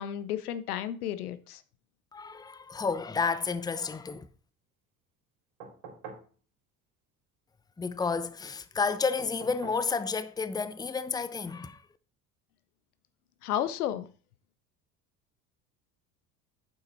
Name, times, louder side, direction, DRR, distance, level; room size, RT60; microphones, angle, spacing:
voice 1, 0.0-1.6 13.4-14.1, left 10 dB, 80° left, 0.9 m, -32 dB
voice 2, 2.1-4.3 7.8-11.8, left 5 dB, 10° left, 0.7 m, -31 dB
sound 1, 5.6-6.3 9.2-9.9 11.5-11.6, right 4 dB, 70° right, 4.2 m, -45 dB
8.8 x 7.5 x 4.1 m
hypercardioid pair, 65°, 44 cm